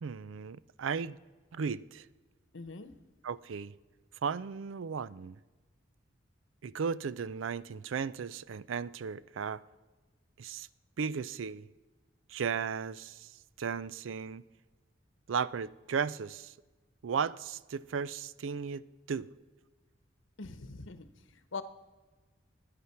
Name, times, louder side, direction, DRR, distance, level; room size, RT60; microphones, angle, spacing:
voice 1, 0.0-1.2 1.5-2.1 3.2-3.7 4.2-5.4 6.6-9.6 10.4-10.7 11.0-11.7 12.3-13.3 13.6-14.4 15.3-16.5 17.0-19.3, right 6 dB, 90° right, 0.4 m, -35 dB
voice 2, 2.5-2.9 20.4-21.6, left 4 dB, 85° left, 1.0 m, -43 dB
12.5 x 9.8 x 5.8 m
head